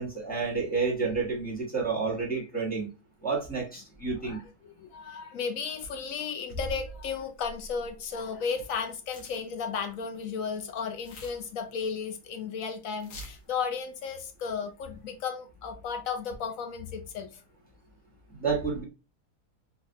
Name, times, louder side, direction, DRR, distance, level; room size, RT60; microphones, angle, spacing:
voice 1, 0.0-2.9 3.2-4.4 18.4-18.8, right 4 dB, 5° left, 1.1 m, -30 dB
voice 2, 4.2-17.4, left 6 dB, 65° left, 0.9 m, -34 dB
sound 1, 5.8-6.1 6.5-8.8 9.1-9.4 9.7-10.2 10.6-12.0 12.3-12.4 12.7-12.8 13.0-13.5 14.7-15.1, right 1 dB, 85° left, 1.5 m, -44 dB
4.0 x 2.3 x 2.6 m
omnidirectional pair, 1.7 m